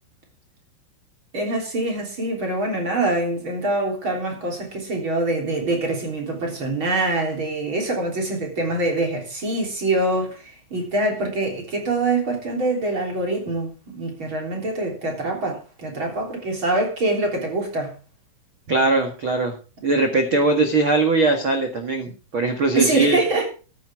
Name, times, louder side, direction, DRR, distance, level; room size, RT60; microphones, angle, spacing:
voice 1, 1.3-18.0 22.8-23.5, right 2 dB, 30° right, 3.7 m, -24 dB
voice 2, 18.7-19.5 19.8-23.2, right 2 dB, 85° right, 1.1 m, -20 dB
14.0 x 11.5 x 3.6 m
omnidirectional pair, 5.4 m